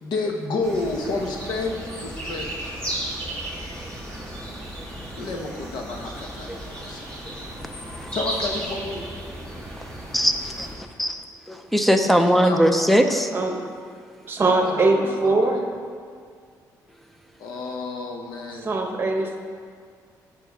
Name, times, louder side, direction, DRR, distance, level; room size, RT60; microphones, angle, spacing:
voice 1, 0.0-2.8 5.2-7.1 8.1-9.1 12.4-12.6 14.6-15.6 17.4-18.7, left 3 dB, 85° left, 2 dB, 1.2 m, -30 dB
sound 1, 0.6-10.7, right 1 dB, 15° left, 2.5 m, -34 dB
voice 2, 11.0-13.3, equal, ahead, 6 dB, 0.6 m, -20 dB
voice 3, 14.2-15.6 18.5-19.4, right 2 dB, 30° right, 3 dB, 1.1 m, -21 dB
15.5 x 5.5 x 3.6 m, 2.1 s
cardioid pair, 130°, 7 cm